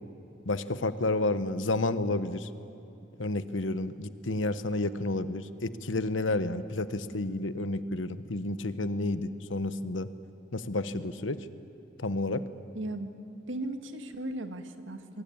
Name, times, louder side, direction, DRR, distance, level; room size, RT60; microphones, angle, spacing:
voice 1, 0.4-2.5 3.2-10.1 10.5-11.4 12.0-12.4, left 2 dB, 85° left, 12 dB, 1.1 m, -30 dB
voice 2, 12.7-13.1 13.5-15.2, right 1 dB, 85° right, 7 dB, 1.8 m, -36 dB
26.5 x 22.5 x 8.8 m, 2.8 s
head